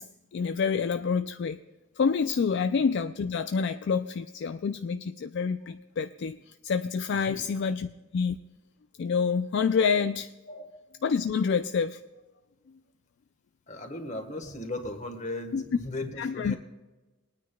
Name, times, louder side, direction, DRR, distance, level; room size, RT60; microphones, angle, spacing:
voice 1, 0.0-1.6 2.0-6.4 6.6-8.4 9.0-10.3 11.0-12.0 15.5-15.6 16.2-16.5, left 5 dB, 55° left, 9 dB, 0.3 m, -27 dB
voice 2, 13.7-16.6, left 2 dB, 35° left, 5 dB, 1.3 m, -37 dB
22.0 x 9.5 x 2.3 m, 1.2 s
head